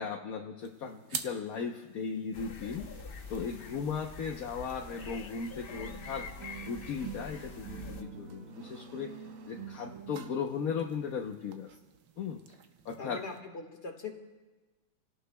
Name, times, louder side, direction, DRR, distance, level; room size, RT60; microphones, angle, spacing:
voice 1, 0.0-2.9 3.3-6.3 6.6-9.1 9.5-11.7 12.2-12.4 12.8-13.2, left 6 dB, 55° left, 1 dB, 1.1 m, -37 dB
sound 1, 0.6-13.4, right 7 dB, 65° right, 1.3 m, -50 dB
sound 2, 2.3-8.0, left 4 dB, 75° left, 0.5 m, -45 dB
Emotional Guitar Music, 5.7-11.0, right 6 dB, 45° right, 1.7 m, -47 dB
voice 2, 13.0-14.1, left 4 dB, 35° left, 3 dB, 1.7 m, -42 dB
29.0 x 18.0 x 2.3 m, 1.2 s
omnidirectional pair, 2.2 m